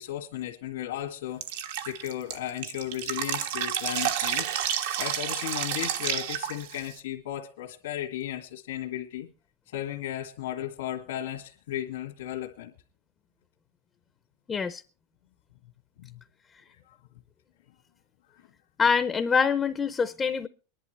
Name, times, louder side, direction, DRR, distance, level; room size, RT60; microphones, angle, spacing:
voice 1, 0.0-1.5 1.8-4.5 5.0-9.3 9.7-12.7 16.0-16.2 16.7-17.0, left 12 dB, 85° left, 1.9 m, -35 dB
Drip, 1.4-7.0, right 10 dB, 75° right, 1.2 m, -30 dB
voice 2, 14.5-14.8 18.8-20.5, left 6 dB, 15° left, 0.6 m, -25 dB
23.5 x 11.0 x 3.2 m
supercardioid pair, 160°, 0 cm